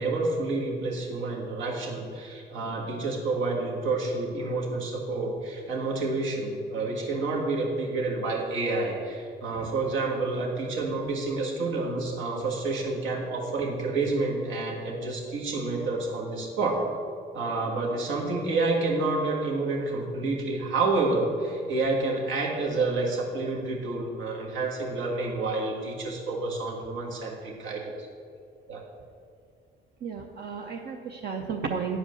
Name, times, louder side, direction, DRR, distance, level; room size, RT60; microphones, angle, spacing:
voice 1, 0.0-16.8 17.3-27.9 28.7-28.8, right 3 dB, 80° right, -2 dB, 1.7 m, -29 dB
voice 2, 30.0-32.0, right 6 dB, 55° right, 2 dB, 0.7 m, -33 dB
9.9 x 5.0 x 6.4 m, 2.4 s
cardioid pair, 90°, 20 cm